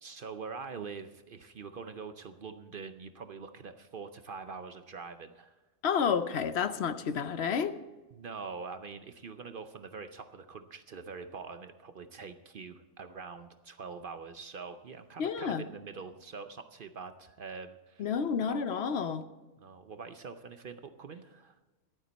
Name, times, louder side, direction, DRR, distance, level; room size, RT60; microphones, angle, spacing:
voice 1, 0.0-5.5 8.1-18.6 19.6-21.6, right 5 dB, 50° right, 9 dB, 0.7 m, -44 dB
voice 2, 5.8-7.7 15.2-15.6 18.0-19.2, left 6 dB, 60° left, 11 dB, 0.9 m, -30 dB
14.5 x 11.5 x 4.1 m, 1.2 s
omnidirectional pair, 1.3 m